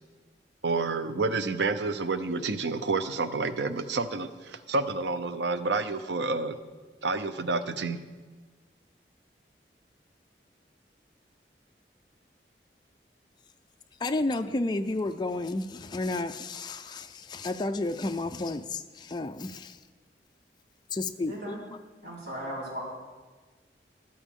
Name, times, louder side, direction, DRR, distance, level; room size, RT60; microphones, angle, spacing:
voice 1, 0.6-6.6 7.0-8.0, right 3 dB, 90° right, 0.7 m, -29 dB
voice 2, 14.0-19.8 20.9-21.6, left 2 dB, 25° left, 0.4 m, -31 dB
voice 3, 21.3-21.6 22.0-22.8, right 1 dB, 70° right, 4.6 m, -37 dB
13.0 x 12.5 x 3.7 m
head